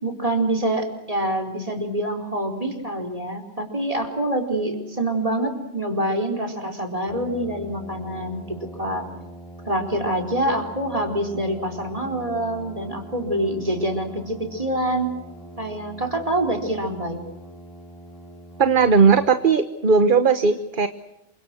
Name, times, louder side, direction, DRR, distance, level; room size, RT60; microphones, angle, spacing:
voice 1, 0.0-9.1 9.7-15.1 15.6-17.2, right 1 dB, 30° right, 3 dB, 4.5 m, -26 dB
Brass instrument, 7.1-19.3, right 1 dB, 25° left, 6.7 m, -42 dB
voice 2, 18.6-20.9, right 5 dB, 45° right, 10 dB, 1.3 m, -17 dB
28.0 x 25.0 x 6.3 m, 0.88 s
omnidirectional pair, 1.2 m